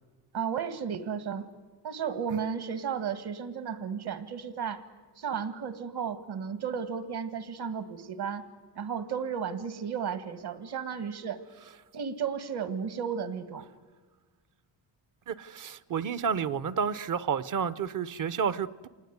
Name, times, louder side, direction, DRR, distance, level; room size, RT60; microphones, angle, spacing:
voice 1, 0.3-1.5 1.8-4.8 5.2-8.4 8.8-11.4 11.9-13.7, right 7 dB, 65° right, 1.9 m, -34 dB
voice 2, 15.3-18.9, right 7 dB, 45° right, 0.7 m, -30 dB
27.0 x 19.5 x 9.5 m
cardioid pair, 125°, 42 cm